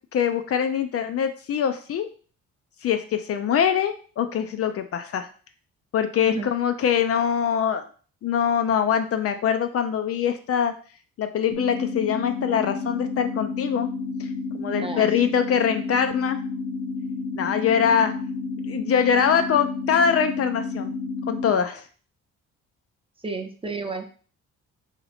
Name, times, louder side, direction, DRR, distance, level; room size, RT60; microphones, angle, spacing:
voice 1, 0.1-2.1 2.8-5.3 5.9-7.8 8.2-10.7 11.2-13.9 14.5-16.4 17.4-18.1 18.7-20.9 21.3-21.8, left 8 dB, 50° left, 8 dB, 0.4 m, -23 dB
sound 1, 11.5-21.5, left 4 dB, 75° left, 0.9 m, -31 dB
voice 2, 14.8-15.1 23.2-24.0, right 3 dB, 20° right, 4 dB, 0.6 m, -31 dB
2.9 x 2.8 x 4.1 m, 0.41 s
cardioid pair, 90°, 30 cm